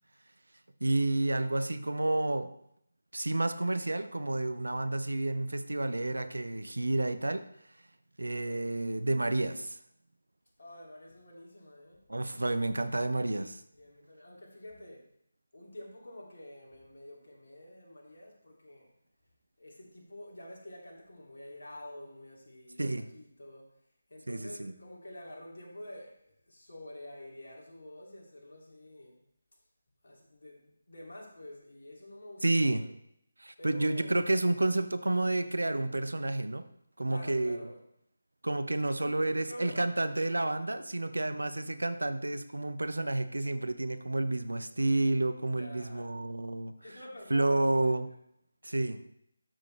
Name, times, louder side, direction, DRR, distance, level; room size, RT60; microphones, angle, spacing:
voice 1, 0.8-2.5 3.1-7.4 8.2-9.8 12.1-13.6 22.8-23.1 24.3-24.7 32.4-32.8 33.4-36.6 37.0-37.6 38.4-46.7 47.3-48.1 48.6-49.0, right 2 dB, 70° right, 11 dB, 0.7 m, -30 dB
voice 2, 10.6-12.1 13.7-15.1 15.5-18.9 19.6-23.8 24.1-29.2 30.0-32.8 33.6-34.1 37.1-37.8 39.0-39.9 40.9-41.1 45.5-46.1 46.8-47.9, left 1 dB, 55° left, -2 dB, 2.6 m, -48 dB
12.5 x 6.2 x 3.3 m, 0.74 s
figure-of-eight pair, 155°, 0 cm